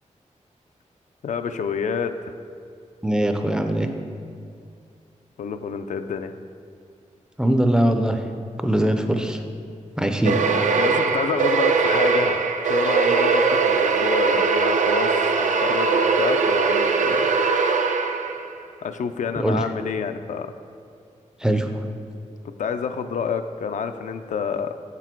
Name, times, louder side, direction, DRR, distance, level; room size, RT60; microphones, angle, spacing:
voice 1, 1.2-2.3 5.4-6.4 10.8-17.3 18.8-20.5 22.4-24.8, left 6 dB, 80° left, 9 dB, 0.4 m, -28 dB
voice 2, 3.0-3.9 7.4-8.2 8.6-9.4 10.0-10.4 19.4-19.6 21.4-21.7, right 1 dB, 5° right, 5 dB, 0.4 m, -21 dB
sound 1, 10.2-18.5, right 5 dB, 75° right, 0.5 m, -21 dB
7.3 x 6.0 x 4.4 m, 2.4 s
wide cardioid pair, 170°, 13 cm